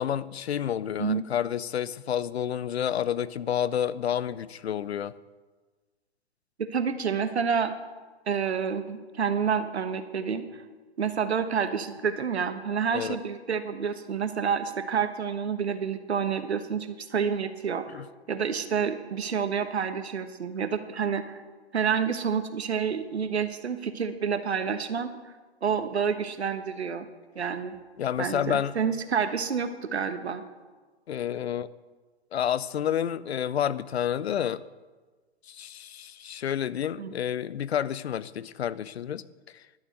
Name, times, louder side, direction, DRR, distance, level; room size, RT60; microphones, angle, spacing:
voice 1, 0.0-5.1 12.9-13.2 17.9-18.1 28.0-28.7 31.1-31.7 32.3-34.6 35.5-39.2 39.5-39.6, left 9 dB, 75° left, 18 dB, 0.6 m, -29 dB
voice 2, 6.6-7.7 8.3-10.5 11.0-18.0 18.3-21.4 21.7-25.1 25.6-27.1 27.3-27.7 28.2-30.4 37.0-37.1, right 6 dB, 80° right, 9 dB, 1.3 m, -28 dB
12.0 x 7.2 x 7.7 m, 1.3 s
hypercardioid pair, 120°, 33 cm